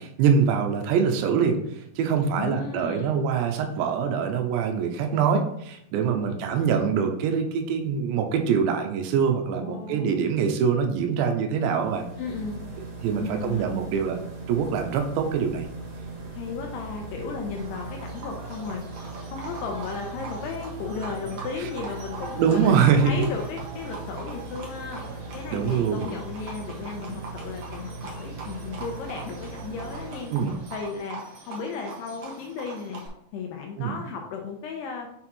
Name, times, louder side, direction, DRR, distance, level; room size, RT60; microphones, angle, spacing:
voice 1, 0.0-12.0 13.0-14.2 14.5-15.7 22.4-23.1 25.5-26.1 30.3-30.6 33.8-34.0, right 6 dB, 90° right, 5 dB, 3.1 m, -24 dB
voice 2, 2.4-3.2 6.1-6.5 9.5-10.3 12.2-12.6 13.1-13.6 16.3-18.8 19.3-30.3 30.7-31.2 31.5-33.0 33.3-35.1, left 5 dB, 80° left, 2 dB, 2.6 m, -35 dB
sound 1, 11.6-31.0, right 3 dB, 40° right, 3.0 m, -40 dB
Livestock farm animals working animals, 17.6-33.1, right 4 dB, 70° right, 1.4 m, -42 dB
7.3 x 4.4 x 4.2 m, 0.74 s
omnidirectional pair, 5.1 m